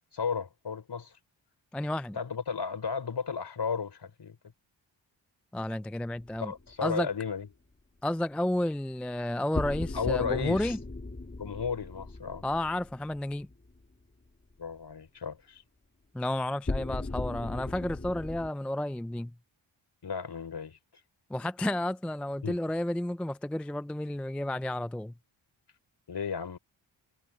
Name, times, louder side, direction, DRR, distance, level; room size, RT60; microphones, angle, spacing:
voice 1, 0.1-1.1 2.1-4.4 6.4-7.5 9.9-10.8 11.4-12.4 14.6-15.6 20.0-20.8 22.4-22.6 26.1-26.6, left 6 dB, 55° left, 4.9 m, -34 dB
voice 2, 1.7-2.2 5.5-6.5 6.8-7.1 8.0-10.8 12.4-13.5 16.1-19.3 21.3-25.1, left 1 dB, 5° left, 0.3 m, -31 dB
sound 1, 6.2-6.7 9.5-13.8 16.7-18.5, left 2 dB, 20° left, 2.5 m, -37 dB
cardioid pair, 55°, 47 cm